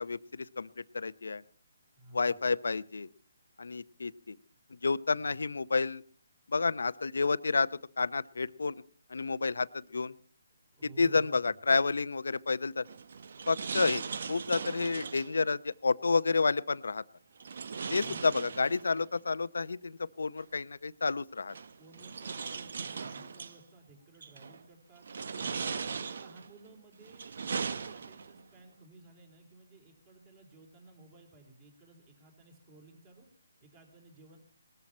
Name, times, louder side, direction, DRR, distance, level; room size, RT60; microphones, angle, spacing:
voice 1, 0.0-1.4 2.1-3.1 3.6-4.4 4.7-6.0 6.5-8.8 9.1-10.2 10.8-12.9 13.5-17.0 17.9-21.5, left 4 dB, 80° left, 17 dB, 0.7 m, -30 dB
voice 2, 1.9-2.4 10.7-11.5 17.9-18.6 21.7-25.1 25.4-34.4, right 2 dB, 30° right, 4 dB, 3.6 m, -56 dB
sound 1, 12.8-15.4 17.4-19.1 20.4-20.5 21.5-23.6 24.2-24.6 25.0-26.5 27.0-28.4, right 5 dB, 60° right, 0.9 m, -38 dB
19.5 x 13.5 x 4.3 m, 0.42 s
hypercardioid pair, 160°, 0 cm